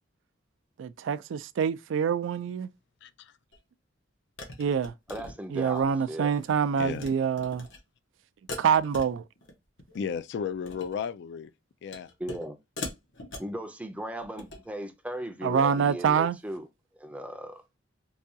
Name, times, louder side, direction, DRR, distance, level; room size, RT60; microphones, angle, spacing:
voice 1, 0.8-2.7 4.6-4.9 5.5-7.7 8.6-9.2 15.4-16.4, right 7 dB, 90° right, 0.3 m, -26 dB
voice 2, 3.0-3.3 6.8-7.1 9.9-11.5 11.8-12.1, left 6 dB, 65° left, 0.3 m, -34 dB
sound 1, 3.5-3.6 4.4-5.9 6.2-6.5 6.8-7.1 7.4-7.8 8.5-9.5 9.8-10.1 10.5-11.0 11.9-12.5 12.8-13.6 14.2-14.6, left 2 dB, 85° left, 1.0 m, -41 dB
voice 3, 5.1-6.3 12.2-12.6 13.4-16.7 16.9-17.6, right 1 dB, 5° right, 0.4 m, -37 dB
4.7 x 2.3 x 2.7 m
head